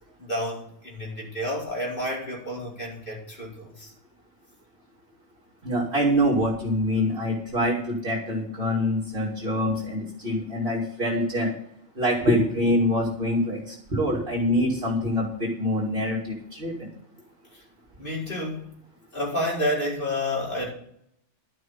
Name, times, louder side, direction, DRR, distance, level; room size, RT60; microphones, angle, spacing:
voice 1, 0.2-3.9 17.5-17.6 18.0-18.7 19.1-20.7, left 1 dB, 45° left, -4 dB, 4.9 m, -30 dB
voice 2, 5.6-11.5 12.0-16.9, equal, 55° right, -5 dB, 2.7 m, -25 dB
12.0 x 6.4 x 7.5 m, 0.67 s
omnidirectional pair, 1.2 m